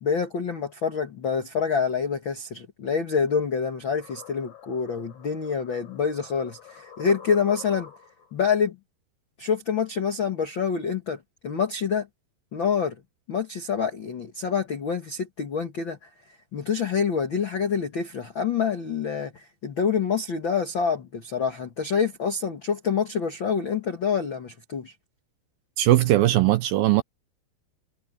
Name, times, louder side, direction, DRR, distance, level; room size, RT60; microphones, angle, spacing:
voice 1, 0.0-7.9 8.3-8.8 9.4-12.1 12.5-12.9 13.3-16.0 16.5-24.9, left 6 dB, 70° left, 1.1 m, -26 dB
sound 1, 3.3-8.3, left 8 dB, 45° left, 6.3 m, -47 dB
voice 2, 25.8-27.0, right 15 dB, 75° right, 2.2 m, -19 dB
omnidirectional pair, 4.8 m